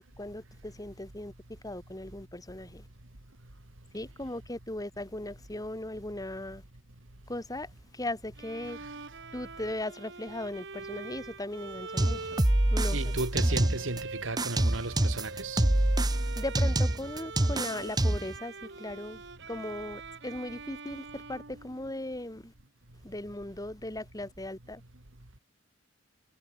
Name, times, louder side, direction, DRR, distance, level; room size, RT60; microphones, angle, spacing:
voice 1, 0.0-2.8 3.9-6.6 7.3-8.9 9.3-12.4 12.7-13.1 16.4-19.2 19.5-22.5 23.0-24.8, left 1 dB, 20° left, 2.6 m, -38 dB
Bowed string instrument, 8.4-22.3, right 4 dB, 65° right, 3.3 m, -44 dB
sound 1, 12.0-14.0 14.4-18.4, right 1 dB, 20° right, 1.0 m, -26 dB
voice 2, 12.9-15.6, right 2 dB, 80° right, 2.7 m, -34 dB
head